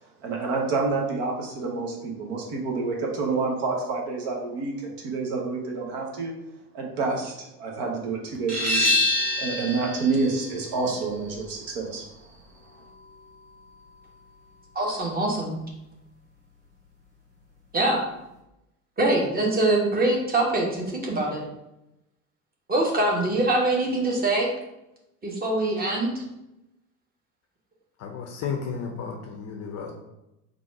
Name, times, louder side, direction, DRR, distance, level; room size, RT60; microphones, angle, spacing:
voice 1, 0.2-6.3 6.7-8.9 9.4-12.1, right 4 dB, 55° right, 0 dB, 1.0 m, -28 dB
sound 1, 8.5-13.9, left 2 dB, 90° right, 0.9 m, -28 dB
voice 2, 14.7-15.6 17.7-18.0 19.0-21.5 22.7-24.5 25.2-26.2, right 2 dB, 20° right, -1 dB, 1.1 m, -24 dB
voice 3, 28.0-29.9, left 6 dB, 35° left, 2 dB, 0.6 m, -33 dB
3.9 x 2.5 x 4.6 m, 0.90 s
figure-of-eight pair, 65°, 46 cm